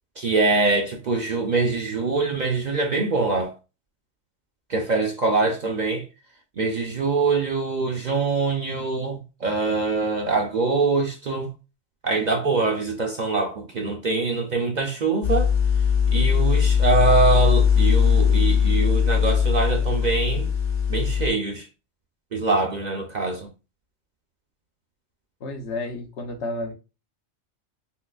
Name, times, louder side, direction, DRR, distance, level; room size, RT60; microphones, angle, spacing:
voice 1, 0.2-3.5 4.7-6.1 6.6-11.5 12.0-15.5 16.1-20.5 20.9-21.7 22.3-23.5, right 3 dB, 50° right, 0.5 m, -24 dB
sound 1, 15.2-21.3, left 7 dB, 45° left, 0.7 m, -20 dB
voice 2, 25.4-26.7, left 2 dB, 75° left, 1.1 m, -31 dB
5.6 x 2.0 x 2.3 m
omnidirectional pair, 1.2 m